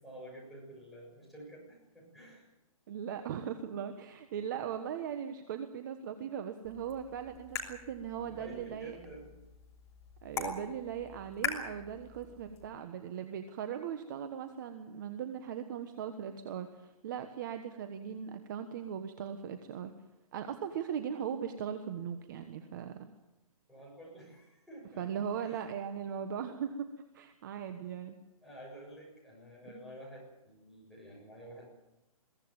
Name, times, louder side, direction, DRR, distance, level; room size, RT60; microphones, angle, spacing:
voice 1, 0.0-2.5 8.2-9.3 23.7-25.1 25.4-25.6 28.4-31.7, right 1 dB, ahead, -5 dB, 7.2 m, -50 dB
voice 2, 2.9-9.0 10.2-19.9 20.3-23.0 25.0-26.9 27.1-28.1 29.7-29.8, right 8 dB, 30° right, 8 dB, 1.3 m, -39 dB
sound 1, 6.6-12.7, left 5 dB, 15° left, 3.0 m, -42 dB
22.0 x 16.5 x 9.0 m, 0.95 s
hypercardioid pair, 165°, 19 cm